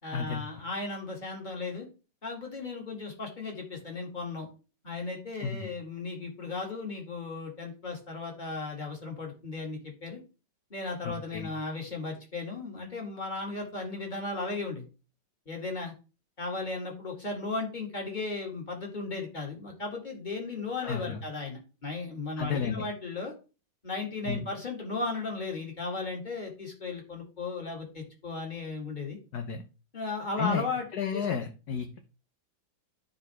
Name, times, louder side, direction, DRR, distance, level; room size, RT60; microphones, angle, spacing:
voice 1, 0.0-1.9 2.2-4.5 4.8-10.2 10.7-14.8 15.5-15.9 16.4-23.3 23.8-29.2 29.9-30.9 31.1-31.2, left 3 dB, 25° left, 1 dB, 2.3 m, -36 dB
voice 2, 5.4-5.7 11.0-11.5 20.8-21.2 22.4-22.9 24.3-24.5 29.3-29.6 30.4-30.6 30.9-32.0, left 6 dB, 60° left, 6 dB, 1.2 m, -32 dB
13.0 x 4.7 x 3.4 m, 0.33 s
omnidirectional pair, 2.1 m